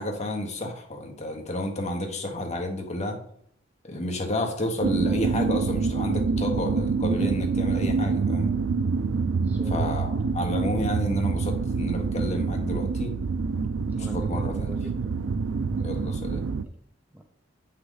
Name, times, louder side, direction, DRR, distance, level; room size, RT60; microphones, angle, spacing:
voice 1, 0.0-3.2 3.8-8.5 9.7-13.1 14.0-14.8 15.8-16.4, left 1 dB, 35° left, 3 dB, 1.3 m, -31 dB
sound 1, 4.8-16.6, right 4 dB, 80° right, 0.4 m, -26 dB
voice 2, 9.2-9.9 13.9-15.1 15.5-16.0 16.6-16.7 17.1-17.2, equal, 10° right, 4 dB, 0.6 m, -42 dB
7.9 x 5.7 x 4.0 m, 0.64 s
head